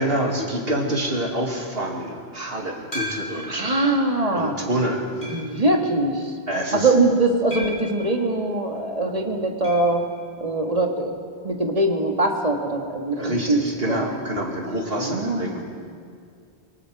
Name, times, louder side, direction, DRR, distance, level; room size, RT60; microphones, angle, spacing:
voice 1, 0.0-3.8 4.3-5.1 6.5-6.9 13.2-15.6, right 1 dB, 65° right, 1 dB, 2.7 m, -27 dB
sound 1, 2.9-3.6 4.2-4.3 5.2-5.6 7.5-8.0 9.6-9.9 10.2-10.3 10.5-10.6 12.7-12.8, equal, 50° left, 5.8 m, -34 dB
voice 2, 3.5-4.5 5.2-6.3 6.7-10.0 10.4-11.2 11.4-14.1 15.0-15.6, right 2 dB, 35° right, 2 dB, 2.1 m, -22 dB
24.0 x 23.5 x 4.9 m, 2.3 s
omnidirectional pair, 1.1 m